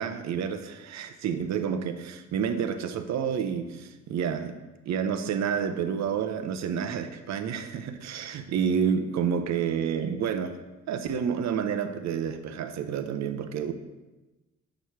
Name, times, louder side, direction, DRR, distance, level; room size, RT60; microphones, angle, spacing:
voice 1, 0.0-4.5 4.9-10.6 10.9-13.7, right 7 dB, 65° right, 8 dB, 0.7 m, -29 dB
6.4 x 4.7 x 5.6 m, 1.1 s
cardioid pair, 90°, 30 cm